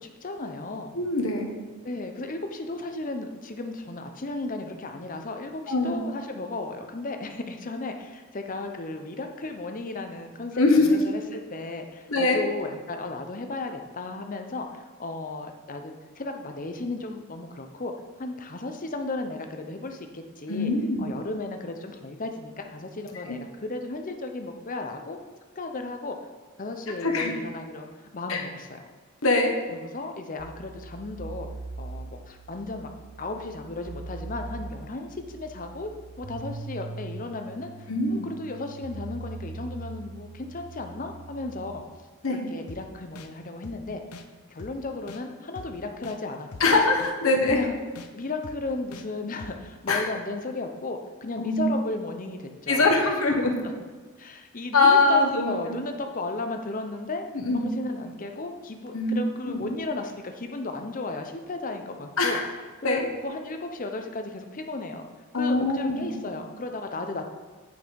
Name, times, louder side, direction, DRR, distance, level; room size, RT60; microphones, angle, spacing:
voice 1, 0.0-0.9 1.8-17.9 18.2-20.7 21.0-25.2 25.6-26.2 26.6-27.9 28.1-28.8 29.7-31.5 31.8-32.9 33.2-41.8 42.3-44.0 44.5-46.8 47.5-47.7 48.1-53.0 54.2-57.3 57.5-62.4 62.8-65.0 65.3-67.3, left 2 dB, 40° left, 5 dB, 0.7 m, -35 dB
voice 2, 0.9-1.5 5.7-6.0 10.5-10.9 12.1-12.4 20.5-21.1 23.3-23.4 27.0-27.3 28.3-28.4 29.2-29.5 37.9-38.2 42.2-42.4 46.6-47.6 49.9-50.1 51.4-51.6 52.7-53.5 54.7-55.8 57.3-57.6 58.9-59.7 62.2-62.4 62.8-63.0 65.3-66.3, left 3 dB, 65° left, 1 dB, 1.3 m, -23 dB
sound 1, 30.4-41.8, right 3 dB, 80° right, 0.7 m, -41 dB
sound 2, 42.7-42.8 43.2-43.3 43.6-43.8 44.1-44.2 44.6-44.7 45.1-45.2 45.6-45.7 46.0-46.2 46.5-46.6 47.0-47.1 47.5-47.6 47.9-48.1 48.4-48.6 48.9-49.0 49.4-49.5 49.9-50.0, left 4 dB, 85° left, 0.7 m, -42 dB
9.4 x 5.5 x 4.7 m, 1.4 s
head